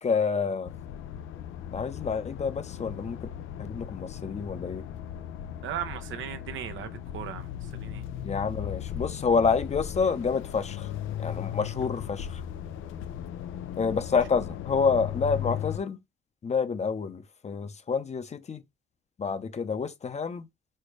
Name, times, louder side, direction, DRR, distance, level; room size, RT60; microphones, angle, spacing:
voice 1, 0.0-0.7 1.7-3.3 3.6-4.8 8.2-10.9 11.2-12.4 13.8-16.0 16.4-18.6 19.2-20.4, left 5 dB, 35° left, 0.7 m, -28 dB
sound 1, 0.7-15.8, left 10 dB, 80° left, 0.5 m, -37 dB
voice 2, 5.6-8.0, right 10 dB, 75° right, 0.8 m, -37 dB
4.4 x 2.2 x 4.7 m
cardioid pair, 90°, 20 cm